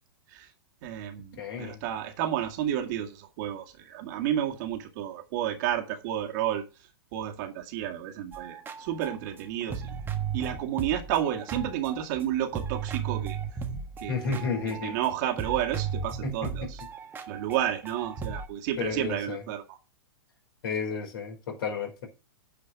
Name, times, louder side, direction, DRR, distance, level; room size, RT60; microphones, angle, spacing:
voice 1, 0.8-6.6 7.1-9.9 10.3-13.4 14.0-14.4 14.8-16.8 17.3-19.8, right 11 dB, 50° right, 2.0 m, -31 dB
voice 2, 1.4-1.8 14.1-15.0 16.2-16.7 18.8-19.4 20.6-22.1, left 5 dB, 60° left, 4.6 m, -32 dB
sound 1, 8.3-12.2 12.5-15.1 15.4-18.5, right 7 dB, 15° right, 1.4 m, -35 dB
9.2 x 5.0 x 7.2 m
hypercardioid pair, 115°, 13 cm